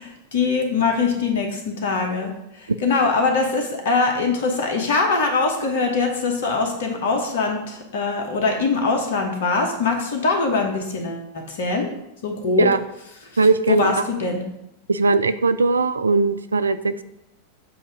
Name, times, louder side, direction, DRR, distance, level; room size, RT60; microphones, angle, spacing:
voice 1, 0.0-11.9 12.2-12.7 13.7-14.4, left 4 dB, 60° left, 3 dB, 1.2 m, -22 dB
voice 2, 13.4-13.9 14.9-17.0, right 4 dB, 75° right, 12 dB, 0.3 m, -19 dB
7.5 x 2.7 x 4.9 m, 0.85 s
figure-of-eight pair, 90°, 0 cm